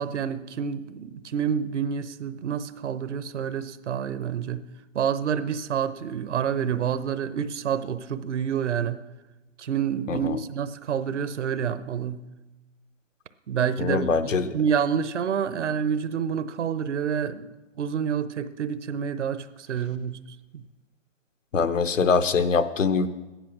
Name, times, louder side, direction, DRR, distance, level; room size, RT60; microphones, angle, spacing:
voice 1, 0.0-4.7 4.9-9.1 9.6-12.3 13.5-17.5 17.8-20.2 20.5-20.6, right 8 dB, 65° right, 13 dB, 0.9 m, -28 dB
voice 2, 10.1-10.4 13.8-14.5 21.5-23.1, left 5 dB, 80° left, 10 dB, 1.1 m, -23 dB
12.5 x 10.5 x 6.1 m, 1.1 s
hypercardioid pair, 145°, 38 cm